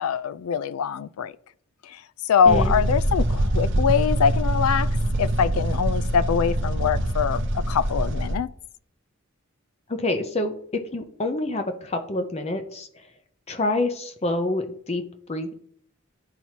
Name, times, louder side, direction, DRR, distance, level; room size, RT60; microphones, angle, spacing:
voice 1, 0.0-1.3 1.8-2.0 2.3-4.9 5.2-8.5, left 7 dB, 75° left, 0.3 m, -23 dB
sound 1, 2.5-8.3, right 1 dB, 55° right, 0.6 m, -24 dB
voice 2, 9.9-10.5 10.9-12.9 13.5-15.0 15.3-15.5, left 2 dB, 30° left, 0.6 m, -27 dB
10.5 x 4.4 x 2.8 m
head